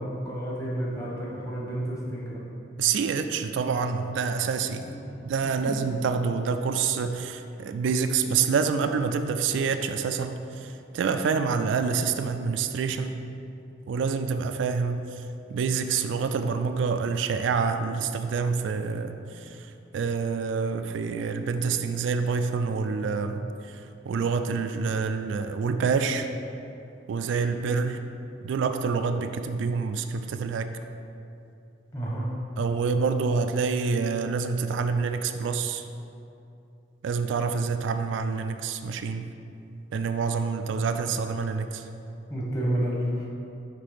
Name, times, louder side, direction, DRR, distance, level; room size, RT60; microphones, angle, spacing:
voice 1, 0.0-2.4 4.8-4.9 5.5-5.8 31.9-32.3 42.3-43.3, right 1 dB, 15° left, -5 dB, 1.0 m, -30 dB
voice 2, 2.8-4.8 5.3-10.4 10.9-13.2 13.9-15.0 15.5-19.2 19.9-23.4 24.1-26.3 27.1-28.0 28.4-30.7 32.6-35.8 37.0-39.3 39.9-41.8, right 5 dB, 80° right, 8 dB, 0.3 m, -27 dB
5.8 x 3.3 x 5.0 m, 2.7 s
head